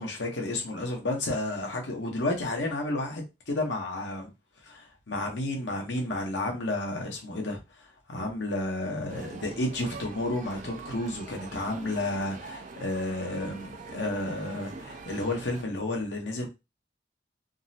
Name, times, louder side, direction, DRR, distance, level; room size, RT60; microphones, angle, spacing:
voice 1, 0.0-4.3 4.6-16.5, left 2 dB, 85° left, 0.9 m, -31 dB
sound 1, 9.1-15.6, right 3 dB, 45° right, 0.5 m, -43 dB
3.6 x 2.0 x 2.7 m
head